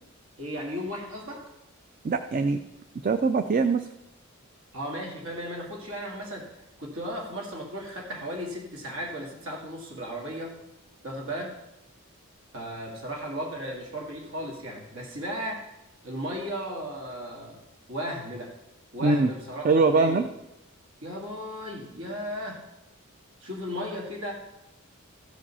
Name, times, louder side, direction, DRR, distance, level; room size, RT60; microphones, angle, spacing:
voice 1, 0.4-1.5 4.7-6.5 6.8-10.6 11.0-11.6 12.5-15.6 16.0-17.6 17.9-18.5 18.9-20.3 21.0-22.6 23.4-24.3, equal, 70° right, 0 dB, 2.1 m, -35 dB
voice 2, 2.0-2.6 3.0-3.9 19.0-19.3 19.6-20.2, right 3 dB, 40° right, 9 dB, 0.4 m, -22 dB
15.0 x 5.1 x 5.6 m, 0.92 s
head